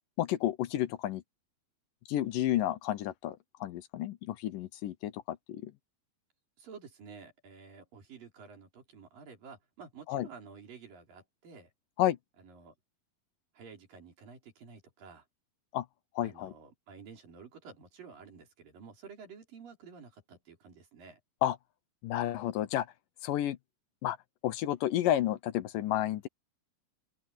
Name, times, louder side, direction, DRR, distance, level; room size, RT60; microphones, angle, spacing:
voice 1, 0.2-1.2 2.1-5.7 10.1-10.3 12.0-12.2 15.7-15.9 16.2-16.5 21.4-21.6 22.0-22.9 23.2-23.6 24.0-24.2 24.4-26.3, left 13 dB, 75° left, 2.4 m, -31 dB
voice 2, 6.6-11.7 12.4-12.7 13.5-15.3 16.2-21.2, right 5 dB, 70° right, 6.0 m, -51 dB
open air
omnidirectional pair, 4.1 m